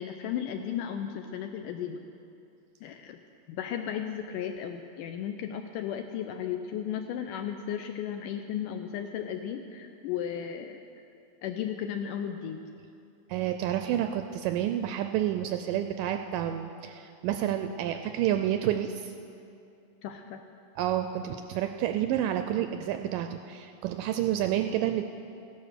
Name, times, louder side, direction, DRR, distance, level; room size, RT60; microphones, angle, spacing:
voice 1, 0.0-2.0 2.8-3.2 3.5-10.8 11.4-12.6 20.0-20.4, left 9 dB, 80° left, 6 dB, 2.0 m, -35 dB
voice 2, 13.3-19.1 20.8-25.0, right 11 dB, 80° right, 7 dB, 2.0 m, -29 dB
15.5 x 11.0 x 6.6 m, 2.6 s
omnidirectional pair, 4.3 m